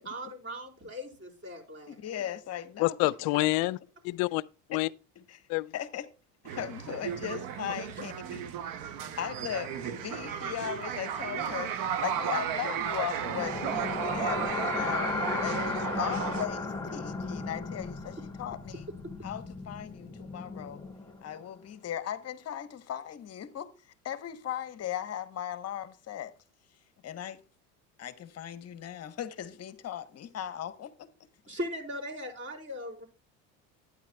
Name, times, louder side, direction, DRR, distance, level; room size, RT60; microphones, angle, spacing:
voice 1, 0.0-2.0 7.2-7.4 15.3-15.9 18.7-19.1 31.5-33.0, equal, 30° right, 4.0 m, -40 dB
voice 2, 2.0-3.1 4.7-4.8 5.2-5.4 5.7-6.0 6.4-8.4 9.2-11.7 12.0-15.1 15.4-18.9 19.2-20.8 21.2-23.7 24.0-26.3 27.0-27.4 28.0-31.1, left 10 dB, 40° left, 1.0 m, -38 dB
voice 3, 2.8-3.8 4.0-4.4 4.7-4.9 5.5-5.7, left 21 dB, 60° left, 0.5 m, -27 dB
sound 1, 6.4-16.5, right 9 dB, 60° right, 0.9 m, -34 dB
sound 2, 13.3-21.3, left 3 dB, 5° left, 1.8 m, -35 dB
12.0 x 9.4 x 2.3 m
supercardioid pair, 95°, 39 cm